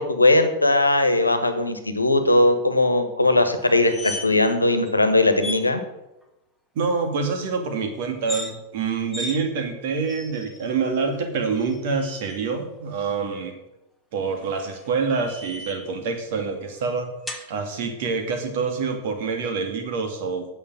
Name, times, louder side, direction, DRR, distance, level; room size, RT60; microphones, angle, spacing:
voice 1, 0.0-5.8, left 2 dB, 80° left, 8 dB, 1.3 m, -19 dB
sound 1, 3.6-4.5 4.8-5.0 5.4-5.6 8.1-8.5 9.1-9.4 10.1-10.6 11.6-12.4 14.3-15.9 17.3-17.5, left 1 dB, 5° left, 1.5 m, -36 dB
voice 2, 6.8-13.5 14.1-17.1 17.5-20.5, right 5 dB, 50° right, 6 dB, 2.2 m, -26 dB
9.1 x 6.7 x 7.6 m, 0.94 s
figure-of-eight pair, 90°, 0 cm